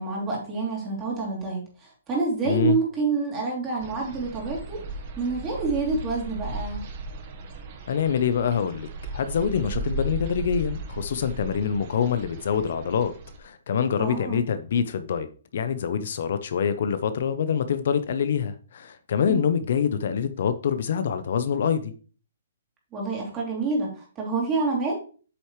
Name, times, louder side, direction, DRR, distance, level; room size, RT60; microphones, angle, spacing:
voice 1, 0.0-4.8 5.2-6.8 14.0-14.4 19.3-19.4 22.9-25.0, right 4 dB, 20° right, 3.1 m, -27 dB
voice 2, 2.5-2.8 7.9-13.1 13.4-15.3 15.5-21.9, left 7 dB, 60° left, 0.7 m, -25 dB
sound 1, 3.8-13.4, right 2 dB, 40° right, 1.3 m, -36 dB
8.2 x 6.3 x 3.2 m
hypercardioid pair, 150°, 0 cm